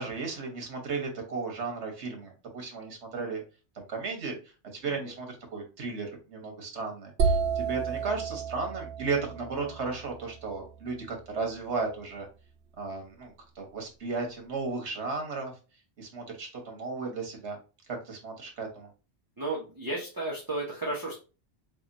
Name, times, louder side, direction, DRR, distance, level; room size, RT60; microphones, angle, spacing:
voice 1, 0.0-3.4 3.7-4.4 4.7-12.3 12.8-15.5 16.0-17.6 18.1-18.9, right 4 dB, 75° right, 3 dB, 1.5 m, -35 dB
sound 1, 7.2-11.0, right 5 dB, 60° right, 0.7 m, -31 dB
voice 2, 19.4-21.2, right 2 dB, 20° right, -5 dB, 1.0 m, -33 dB
3.6 x 3.5 x 2.6 m, 0.33 s
omnidirectional pair, 1.2 m